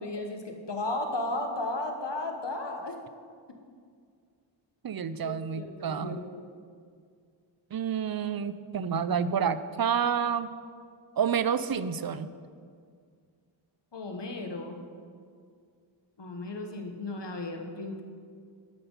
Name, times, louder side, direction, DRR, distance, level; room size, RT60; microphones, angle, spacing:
voice 1, 0.0-3.0 5.2-6.4 13.9-14.8 16.2-18.0, left 2 dB, 60° left, 4 dB, 1.3 m, -35 dB
voice 2, 4.8-6.2 7.7-10.5 11.2-12.3, right 7 dB, 50° right, 13 dB, 0.5 m, -29 dB
12.5 x 5.9 x 5.4 m, 2.1 s
wide cardioid pair, 60°, 47 cm